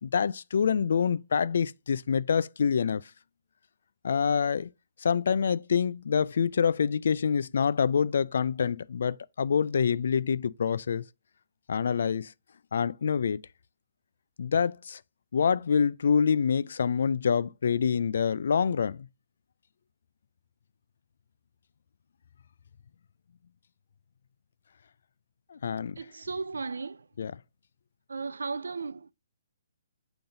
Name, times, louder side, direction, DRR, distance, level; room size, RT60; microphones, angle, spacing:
voice 1, 0.0-3.0 4.0-4.7 5.0-11.0 11.7-12.3 12.7-13.4 14.4-15.0 15.3-19.1 25.5-26.0 27.2-27.3, left 6 dB, 70° left, 0.4 m, -26 dB
voice 2, 26.0-27.1 28.1-29.1, right 4 dB, 85° right, 0.4 m, -35 dB
7.0 x 3.9 x 4.0 m
hypercardioid pair, 140°, 0 cm